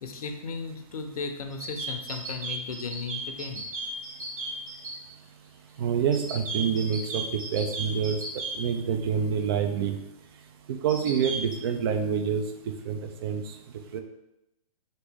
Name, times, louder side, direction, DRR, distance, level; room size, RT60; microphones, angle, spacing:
voice 1, 0.0-3.7, left 4 dB, 75° left, 5 dB, 0.6 m, -36 dB
sound 1, 1.5-4.9 6.1-8.5 10.9-11.5, right 3 dB, 65° right, 1.1 m, -35 dB
voice 2, 5.8-7.3 7.5-8.2 8.6-9.9 10.7-12.4 12.9-13.5 13.9-14.0, right 7 dB, 40° right, 6 dB, 0.4 m, -27 dB
2.9 x 2.6 x 3.5 m, 0.88 s
hypercardioid pair, 135°, 19 cm